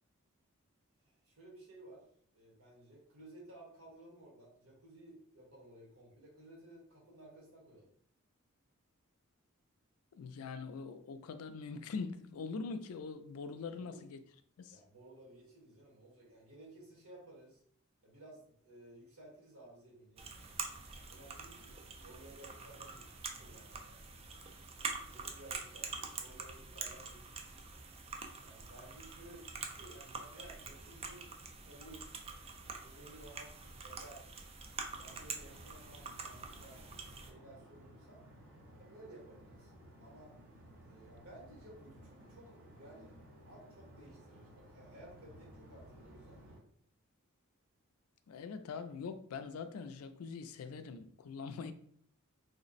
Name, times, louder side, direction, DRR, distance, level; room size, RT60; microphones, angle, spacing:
voice 1, 1.0-2.1 2.3-7.9 13.7-14.0 14.7-17.6 18.0-20.3 21.1-24.1 25.1-27.6 28.4-32.1 32.7-34.3 35.0-36.8 37.3-38.2 38.8-39.7 40.0-40.3 40.8-43.2 43.5-46.7, right 1 dB, 90° right, -3 dB, 1.4 m, -56 dB
voice 2, 10.1-14.2 14.6-14.8 48.3-51.7, left 4 dB, 75° left, 10 dB, 0.4 m, -43 dB
sound 1, 20.2-37.3, right 4 dB, 30° right, 0.4 m, -46 dB
sound 2, 35.0-46.6, equal, 60° right, 0.9 m, -57 dB
3.2 x 2.0 x 3.9 m, 0.63 s
head